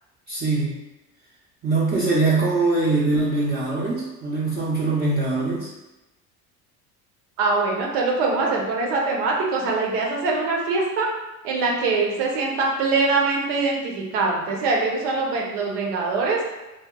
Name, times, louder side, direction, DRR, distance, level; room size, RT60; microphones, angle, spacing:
voice 1, 0.3-0.8 1.6-5.7, right 3 dB, 25° right, -8 dB, 0.6 m, -22 dB
voice 2, 7.4-11.1 11.4-16.4, right 3 dB, 80° right, -1 dB, 0.8 m, -23 dB
2.8 x 2.2 x 2.2 m, 1.0 s
hypercardioid pair, 75°, 45 cm